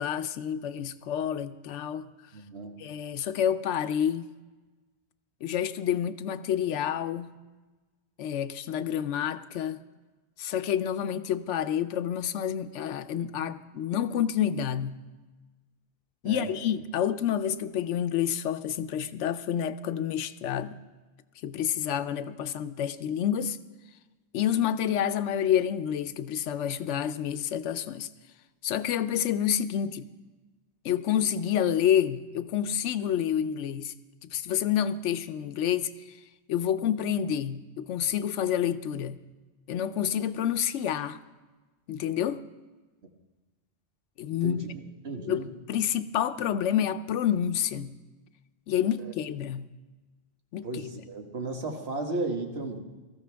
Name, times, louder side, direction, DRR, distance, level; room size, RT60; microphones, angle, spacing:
voice 1, 0.0-2.1 2.8-4.3 5.4-7.3 8.2-9.8 10.4-15.0 16.2-20.8 21.4-23.6 24.3-28.1 28.6-30.1 30.8-33.9 34.3-36.2 36.5-39.2 39.7-41.2 41.9-42.4 44.2-44.7 45.2-48.0 48.7-49.7 50.5-50.8, left 9 dB, 85° left, 0.9 m, -28 dB
voice 2, 2.3-2.8 16.2-16.5 44.3-44.6 45.0-45.5 49.0-49.1 50.6-52.8, right 2 dB, 65° right, 1.7 m, -34 dB
18.5 x 14.0 x 3.4 m
omnidirectional pair, 1.2 m